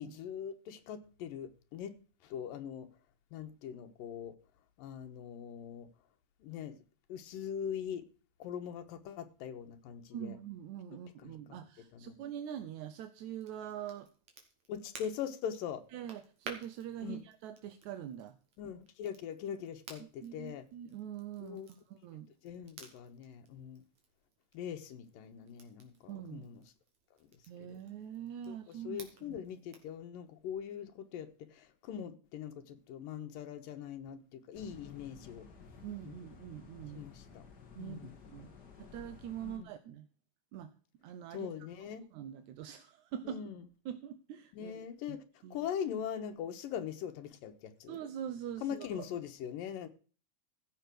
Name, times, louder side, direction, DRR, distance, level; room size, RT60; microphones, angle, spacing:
voice 1, 0.0-2.9 3.3-4.3 4.8-5.9 6.4-6.8 7.1-8.0 8.4-10.4 10.9-11.3 11.9-12.1 14.7-15.8 17.0-17.2 18.6-20.7 21.4-21.7 22.4-23.8 24.5-26.6 27.6-27.8 28.5-35.5 36.0-36.2 36.9-37.4 37.8-38.2 39.4-39.7 41.3-42.1 43.3-43.6 44.5-45.2 45.5-48.0 48.6-49.9, left 8 dB, 80° left, 2.8 m, -42 dB
voice 2, 10.1-14.1 15.9-18.4 20.0-21.6 21.9-22.3 26.1-26.5 27.5-29.4 35.8-37.0 37.8-38.5 38.8-40.1 40.5-40.7 41.0-41.5 42.1-43.4 43.9-44.7 45.1-45.6 47.9-49.1, right 10 dB, 70° right, 1.9 m, -44 dB
Crackle, 13.3-30.0, right 5 dB, 55° right, 3.4 m, -56 dB
sound 1, 34.5-39.6, left 6 dB, 35° left, 1.9 m, -54 dB
15.5 x 6.8 x 6.1 m
omnidirectional pair, 4.0 m